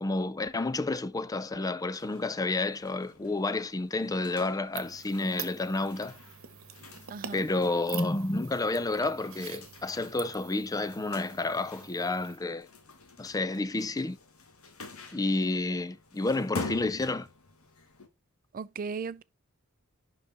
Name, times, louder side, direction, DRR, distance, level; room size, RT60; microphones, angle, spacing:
voice 1, 0.0-6.2 7.3-12.7 13.2-14.2 15.1-17.3, left 2 dB, 15° left, 0.4 m, -30 dB
sound 1, 1.9-18.1, left 3 dB, 85° left, 1.3 m, -47 dB
sound 2, 4.7-12.4, right 9 dB, 70° right, 1.0 m, -46 dB
voice 2, 7.1-7.5 18.5-19.2, right 5 dB, 40° right, 0.4 m, -36 dB
11.0 x 4.0 x 3.4 m
head